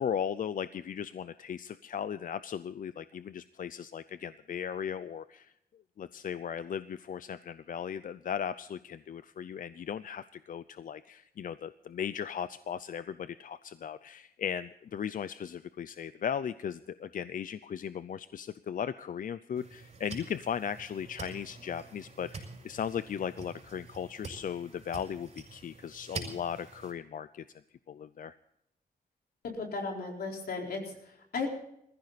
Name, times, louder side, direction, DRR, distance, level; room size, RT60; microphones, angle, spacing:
voice 1, 0.0-5.5 6.0-27.4 27.9-28.3, left 8 dB, 60° left, 14 dB, 0.5 m, -37 dB
sound 1, 19.5-26.9, right 4 dB, 45° right, 5.9 m, -46 dB
voice 2, 29.4-31.5, left 4 dB, 90° left, 1 dB, 4.4 m, -36 dB
21.0 x 15.0 x 4.1 m, 0.77 s
wide cardioid pair, 140°, 16 cm